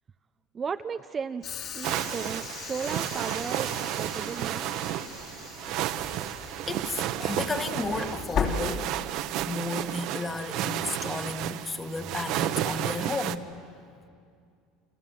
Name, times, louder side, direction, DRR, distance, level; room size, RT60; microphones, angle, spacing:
voice 1, 0.5-4.7, right 6 dB, 25° right, 9 dB, 0.6 m, -35 dB
Train / Sliding door, 1.4-9.4, left 6 dB, 45° left, 3.0 m, -37 dB
sound 1, 1.8-13.4, right 12 dB, 60° right, 1.0 m, -32 dB
voice 2, 6.6-8.9 9.5-13.5, left 3 dB, 15° left, 7 dB, 1.7 m, -33 dB
29.5 x 26.0 x 7.7 m, 2.3 s
cardioid pair, 140°, 0 cm